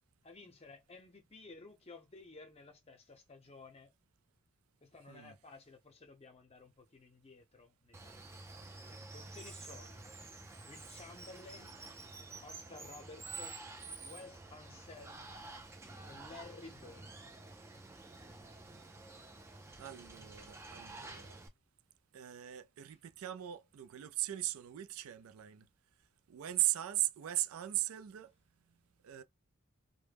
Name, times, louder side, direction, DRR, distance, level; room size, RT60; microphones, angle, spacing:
voice 1, 0.2-3.9 4.8-8.4 9.1-10.1 10.6-11.8 12.4-13.6 14.0-15.3 16.1-17.1 17.9-18.0, left 3 dB, 30° left, 0.6 m, -54 dB
Water, 7.9-21.5, right 3 dB, 15° right, 0.4 m, -50 dB
voice 2, 19.8-21.4 22.1-25.7 26.3-28.3 29.0-29.2, right 15 dB, 85° right, 0.4 m, -38 dB
2.1 x 2.1 x 3.3 m
head